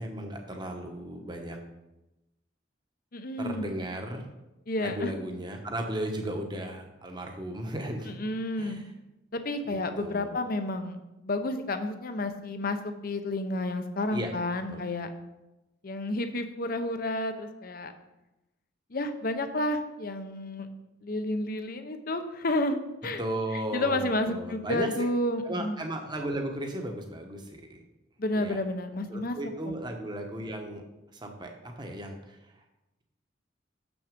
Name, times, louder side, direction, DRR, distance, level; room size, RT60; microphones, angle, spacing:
voice 1, 0.0-1.6 3.4-4.2 4.8-8.1 8.6-8.9 9.6-10.4 14.1-14.3 14.7-14.8 23.2-24.9 25.4-27.8 28.3-28.6 29.1-30.8 31.1-32.5, right 1 dB, 25° right, 3 dB, 1.0 m, -35 dB
voice 2, 3.1-3.8 4.7-5.1 8.2-8.8 9.3-11.0 11.2-15.1 15.8-17.9 18.9-20.7 21.0-23.2 23.7-25.8 28.2-29.4 29.6-29.7, left 1 dB, 50° left, 8 dB, 0.7 m, -31 dB
7.2 x 6.1 x 5.2 m, 0.97 s
head